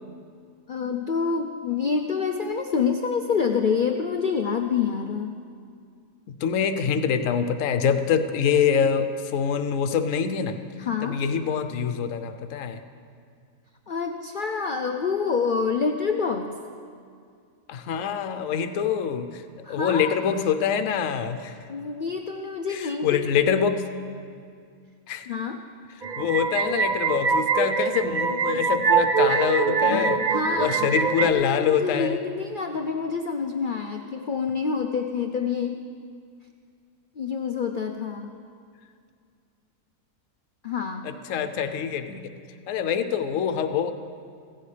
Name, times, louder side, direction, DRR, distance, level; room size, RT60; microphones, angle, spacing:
voice 1, 0.7-5.4 10.8-11.2 13.9-16.5 19.6-20.2 21.7-23.2 25.3-25.6 29.8-30.8 31.2-35.8 37.2-38.3 40.6-41.1, left 5 dB, 90° left, 4 dB, 0.4 m, -27 dB
voice 2, 6.3-10.6 11.0-12.8 17.7-19.4 19.7-21.5 22.7-23.8 25.1-25.3 26.2-30.2 30.6-32.2 41.0-42.3 42.7-43.9, left 7 dB, 65° left, 9 dB, 1.0 m, -25 dB
sound 1, 26.0-31.3, right 5 dB, 75° right, 0.4 m, -23 dB
15.5 x 15.5 x 3.3 m, 2.2 s
omnidirectional pair, 1.6 m